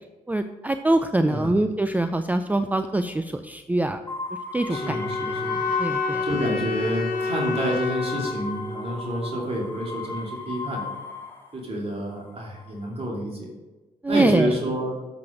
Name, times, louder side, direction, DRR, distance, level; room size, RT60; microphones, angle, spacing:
voice 1, 0.3-4.0 4.5-5.3 5.8-6.2 14.0-14.6, right 2 dB, 10° right, 9 dB, 0.4 m, -24 dB
Ghostly C Note, 4.1-6.6 7.0-11.5 12.3-12.8, left 4 dB, 15° left, 1.8 m, -34 dB
sound 1, 4.7-9.7, left 4 dB, 65° left, 1.2 m, -30 dB
voice 2, 4.7-5.6 6.2-10.8 11.5-13.5 14.1-14.9, equal, 35° right, -2 dB, 2.7 m, -29 dB
7.5 x 5.9 x 5.0 m, 1.2 s
supercardioid pair, 60°, 16 cm